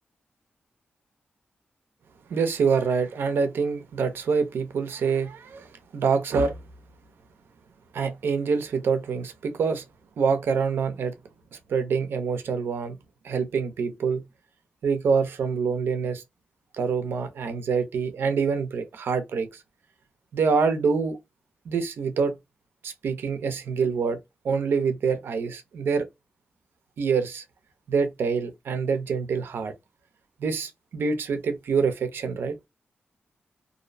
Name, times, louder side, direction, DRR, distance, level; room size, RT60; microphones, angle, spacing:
voice 1, 2.3-6.6 7.9-9.8 10.2-11.1 11.7-13.0 13.2-14.2 14.8-16.2 16.7-19.5 20.3-21.2 21.7-22.3 22.8-24.2 24.4-26.1 27.0-27.4 27.9-29.7 30.4-32.6, right 5 dB, 90° right, 0.5 m, -26 dB
2.6 x 2.0 x 2.5 m
cardioid pair, 85°, 4 cm